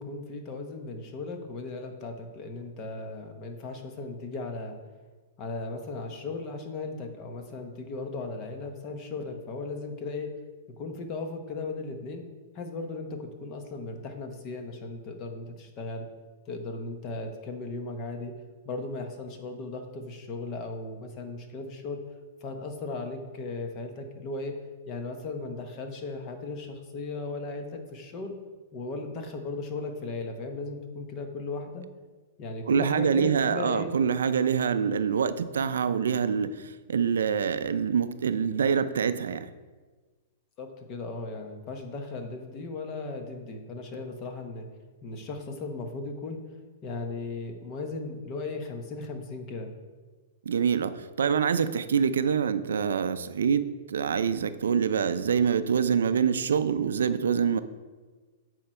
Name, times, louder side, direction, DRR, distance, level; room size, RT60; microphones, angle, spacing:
voice 1, 0.0-4.7 5.4-10.3 10.8-12.2 12.5-16.1 16.5-18.3 18.6-22.0 22.4-24.6 24.9-28.3 28.7-31.9 32.4-33.9 40.6-44.6 45.0-46.4 46.8-49.7, left 3 dB, 30° left, 5 dB, 1.0 m, -36 dB
voice 2, 32.7-39.4 50.5-57.6, right 7 dB, 90° right, 12 dB, 0.4 m, -25 dB
8.6 x 4.5 x 4.4 m, 1.3 s
hypercardioid pair, 145°, 0 cm